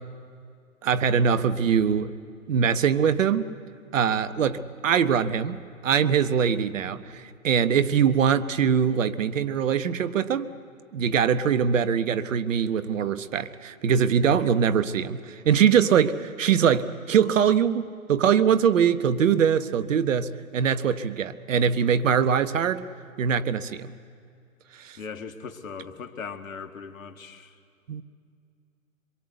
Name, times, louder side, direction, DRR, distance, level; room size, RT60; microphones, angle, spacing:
voice 1, 0.8-2.1 2.5-3.4 3.9-10.5 10.9-17.8 18.1-22.8 23.2-23.9 24.8-25.0 27.9-28.0, right 7 dB, 65° right, 13 dB, 1.2 m, -22 dB
voice 2, 25.0-27.6, left 5 dB, 70° left, 9 dB, 1.9 m, -39 dB
25.5 x 22.5 x 8.1 m, 2.3 s
figure-of-eight pair, 120°, 42 cm